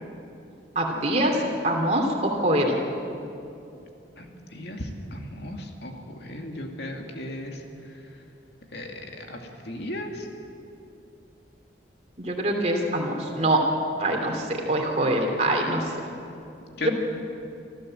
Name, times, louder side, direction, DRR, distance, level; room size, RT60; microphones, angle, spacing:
voice 1, 0.7-1.4 1.6-2.8 12.2-13.6 14.0-15.9 16.8-16.9, right 1 dB, 35° right, 1 dB, 3.0 m, -24 dB
voice 2, 4.2-7.6 8.7-10.3 16.8-16.9, left 1 dB, 65° left, 2 dB, 2.5 m, -36 dB
25.5 x 14.5 x 7.8 m, 2.7 s
head